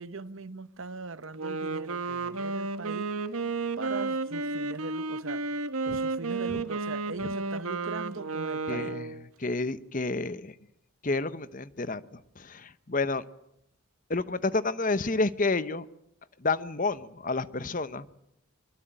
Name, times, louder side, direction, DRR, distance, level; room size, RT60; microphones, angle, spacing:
voice 1, 0.0-3.1 3.8-5.5 5.8-9.0, right 4 dB, 65° right, 1.1 m, -40 dB
Wind instrument woodwind instrument, 1.2-9.2, right 3 dB, 90° right, 1.6 m, -32 dB
voice 2, 8.7-9.1 9.4-10.5 11.0-12.0 12.4-13.2 14.1-15.8 16.4-18.1, left 3 dB, 40° left, 0.9 m, -29 dB
24.0 x 23.5 x 9.0 m
head